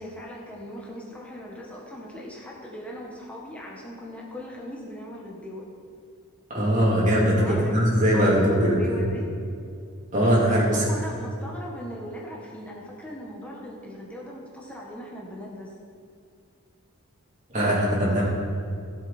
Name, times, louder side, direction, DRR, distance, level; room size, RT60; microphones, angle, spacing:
voice 1, 0.0-5.6 7.4-7.8 8.1-9.3 10.7-15.7, equal, 5° left, -4 dB, 1.4 m, -39 dB
voice 2, 6.5-9.0 10.1-10.8 17.5-18.3, equal, 35° right, -6 dB, 3.3 m, -21 dB
16.0 x 7.3 x 4.4 m, 2.4 s
head